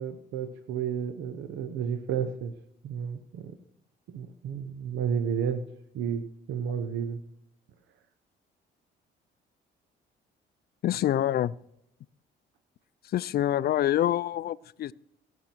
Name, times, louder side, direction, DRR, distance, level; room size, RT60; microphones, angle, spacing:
voice 1, 0.0-2.5 2.8-3.6 4.1-5.6 5.9-7.2, right 7 dB, 75° right, 9 dB, 0.9 m, -32 dB
voice 2, 10.8-11.5 13.1-14.9, left 12 dB, 55° left, 19 dB, 0.4 m, -26 dB
17.5 x 6.2 x 4.5 m, 0.77 s
cardioid pair, 85°, 20 cm